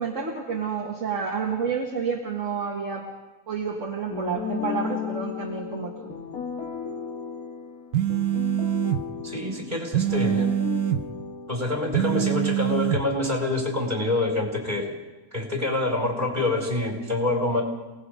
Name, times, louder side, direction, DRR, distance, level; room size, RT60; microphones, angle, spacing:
voice 1, 0.0-3.1 3.5-6.1, right 6 dB, 55° right, -1 dB, 2.1 m, -29 dB
sound 1, 4.1-12.3, left 6 dB, 75° left, 1.8 m, -34 dB
sound 2, 7.9-9.0 9.9-11.1 11.9-13.1, right 13 dB, 80° right, 1.3 m, -24 dB
voice 2, 9.2-10.5 11.5-15.0 15.3-17.6, left 2 dB, 30° right, 1 dB, 4.7 m, -26 dB
28.0 x 19.0 x 5.0 m, 1.1 s
omnidirectional pair, 1.6 m